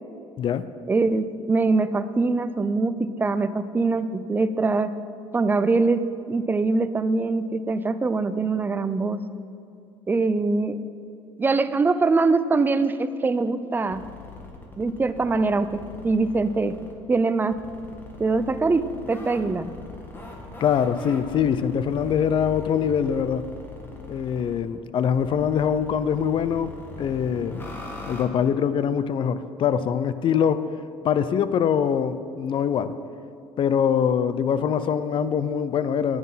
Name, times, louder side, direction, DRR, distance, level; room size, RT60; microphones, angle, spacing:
voice 1, 0.9-4.9 5.3-9.2 10.1-10.8 11.4-14.0 14.8-16.8 17.1-17.6 18.2-19.7, right 3 dB, 15° right, 12 dB, 0.5 m, -23 dB
sound 1, 13.9-16.9 17.5-24.6 25.1-28.3, left 3 dB, 20° left, 1.6 m, -41 dB
voice 2, 20.6-23.5 24.1-26.7 27.0-27.7 28.1-30.7 31.0-33.0 33.6-36.2, left 8 dB, 45° left, 14 dB, 0.5 m, -23 dB
9.6 x 9.6 x 5.6 m, 2.6 s
cardioid pair, 120°, 12 cm